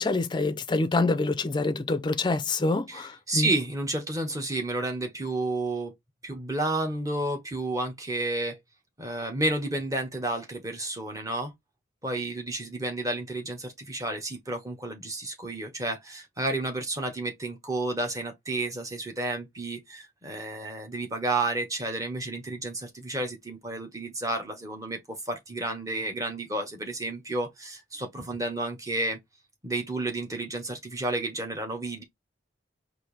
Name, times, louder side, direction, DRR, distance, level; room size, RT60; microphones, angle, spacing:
voice 1, 0.0-3.5, left 3 dB, 25° left, 0.4 m, -26 dB
voice 2, 2.9-5.9 6.2-8.6 9.0-11.5 12.0-29.2 29.6-32.0, right 2 dB, 15° right, 1.0 m, -31 dB
4.4 x 2.6 x 3.2 m
head